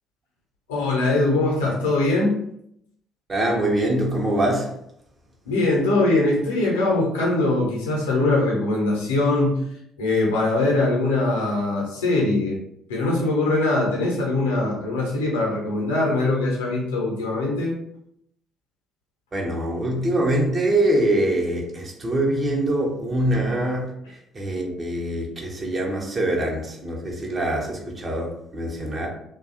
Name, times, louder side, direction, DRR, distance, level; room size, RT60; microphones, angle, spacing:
voice 1, 0.7-2.4 5.5-9.6 10.0-12.6 12.9-17.7 23.3-23.5, left 2 dB, 75° left, -2 dB, 0.7 m, -22 dB
voice 2, 3.3-4.7 19.3-29.1, right 1 dB, 30° right, 0 dB, 0.7 m, -24 dB
2.6 x 2.3 x 2.5 m, 0.73 s
figure-of-eight pair, 50°, 0 cm